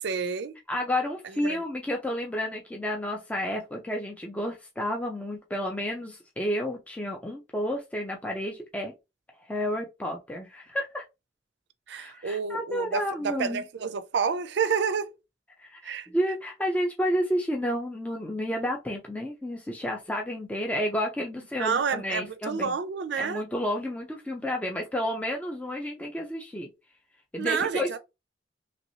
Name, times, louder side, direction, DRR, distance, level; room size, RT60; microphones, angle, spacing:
voice 1, 0.0-0.6 1.2-1.6 11.9-15.1 15.8-16.1 21.6-23.4 27.4-28.0, right 6 dB, 65° right, 0.4 m, -29 dB
voice 2, 0.7-8.9 9.5-11.0 12.0-13.7 15.6-22.7 23.2-26.7 27.3-28.0, equal, 10° left, 0.4 m, -31 dB
3.0 x 2.9 x 2.7 m
head